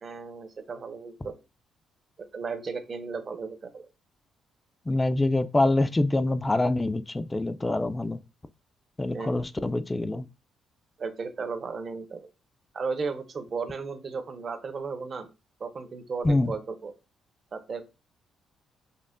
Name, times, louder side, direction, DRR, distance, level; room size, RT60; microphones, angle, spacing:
voice 1, 0.0-1.4 2.3-3.9 9.1-9.3 11.0-12.3 12.7-15.3 15.6-16.9 17.5-17.8, right 4 dB, 45° right, 0.6 m, -35 dB
voice 2, 4.9-8.2 9.0-10.2 16.2-16.5, left 2 dB, 15° left, 0.3 m, -25 dB
5.3 x 2.1 x 2.4 m
cardioid pair, 90°, 0 cm